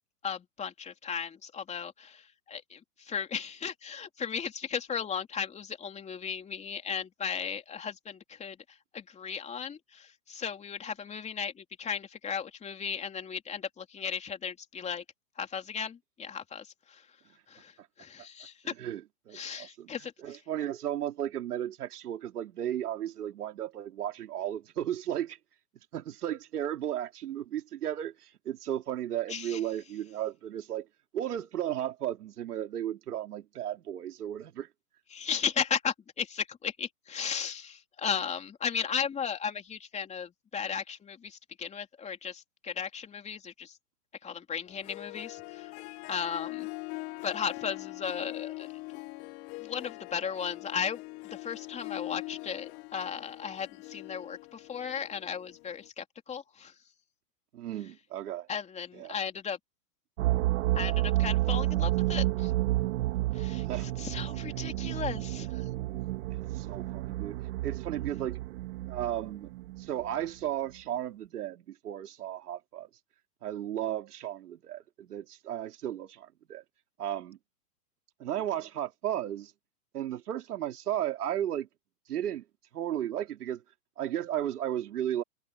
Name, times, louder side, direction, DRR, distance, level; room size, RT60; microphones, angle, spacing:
voice 1, 0.2-15.0 15.4-17.1 17.5-18.7 19.3-20.4 29.3-29.6 35.1-43.8 44.2-45.7 46.1-46.7 47.2-48.7 48.9-49.0 49.6-56.7 58.5-59.6 60.7-62.5 63.3-65.7, left 7 dB, 15° left, 3.3 m, -36 dB
voice 2, 18.8-19.9 20.2-25.4 25.9-30.9 31.1-34.7 57.5-58.5 58.9-59.1 63.6-63.9 66.3-68.4 68.9-69.5 69.8-72.9 73.4-76.6 77.0-77.4 78.2-79.5 79.9-81.7 82.1-82.4 82.7-83.6 84.0-85.2, right 11 dB, 70° right, 3.2 m, -34 dB
Harp, 44.7-55.9, left 23 dB, 30° left, 1.4 m, -42 dB
sound 1, 60.2-70.0, right 17 dB, 50° right, 2.4 m, -30 dB
hypercardioid pair, 140°, 48 cm